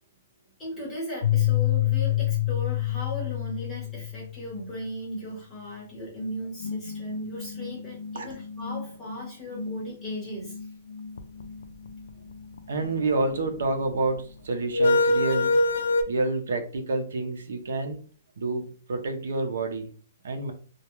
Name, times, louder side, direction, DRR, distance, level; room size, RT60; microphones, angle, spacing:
voice 1, 0.6-10.6, equal, 10° left, -5 dB, 1.0 m, -37 dB
sound 1, 1.2-4.5 6.6-13.4 14.7-16.0, left 5 dB, 75° left, 0.3 m, -27 dB
voice 2, 12.7-15.6 16.1-18.0 18.4-19.9 20.2-20.5, right 2 dB, 75° right, 5 dB, 0.6 m, -28 dB
2.3 x 2.2 x 2.9 m, 0.40 s
hypercardioid pair, 180°, 0 cm